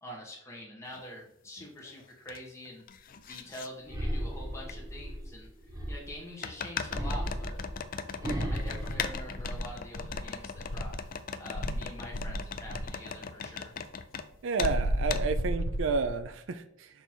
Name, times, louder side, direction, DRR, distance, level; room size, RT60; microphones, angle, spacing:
voice 1, 0.0-7.6 8.5-10.9 11.4-13.7, equal, 15° left, -3 dB, 1.6 m, -45 dB
sound 1, 0.9-1.0 1.6-2.4 2.6-3.7 4.7-4.8 6.4-14.3 14.6-14.8 15.1-15.3, left 6 dB, 45° left, 0.4 m, -39 dB
sound 2, 3.9-6.3 6.9-9.9 10.4-10.9, equal, 20° right, 1.0 m, -35 dB
Insect, 8.8-11.1 11.5-13.0 14.6-16.3, equal, 75° left, 0.8 m, -33 dB
voice 2, 14.4-16.9, right 4 dB, 65° right, 11 dB, 0.4 m, -31 dB
6.2 x 3.4 x 4.5 m, 0.77 s
head